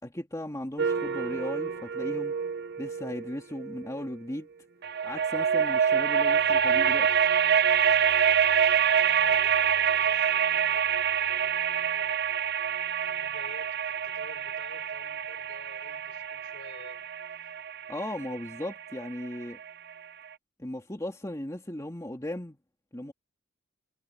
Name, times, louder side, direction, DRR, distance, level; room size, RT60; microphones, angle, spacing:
voice 1, 0.0-2.4 2.8-4.5 5.0-7.1 17.9-19.6 20.6-22.6 22.9-23.1, left 1 dB, 15° left, 2.2 m, -37 dB
sound 1, 0.8-4.1 4.8-19.7, right 8 dB, 55° right, 0.8 m, -26 dB
voice 2, 6.1-12.2 12.9-17.1, left 2 dB, 60° left, 6.5 m, -53 dB
head